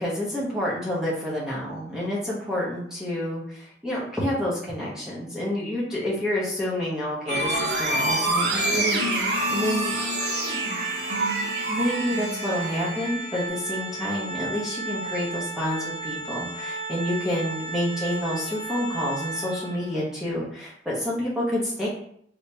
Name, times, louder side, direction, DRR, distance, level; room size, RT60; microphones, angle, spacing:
voice 1, 0.0-10.0 11.7-21.9, left 1 dB, 5° right, -7 dB, 0.8 m, -28 dB
sound 1, 7.3-13.5, right 1 dB, 65° right, 0.6 m, -27 dB
Organ, 9.3-20.0, right 3 dB, 30° left, 0.9 m, -34 dB
3.3 x 2.7 x 2.7 m, 0.65 s
head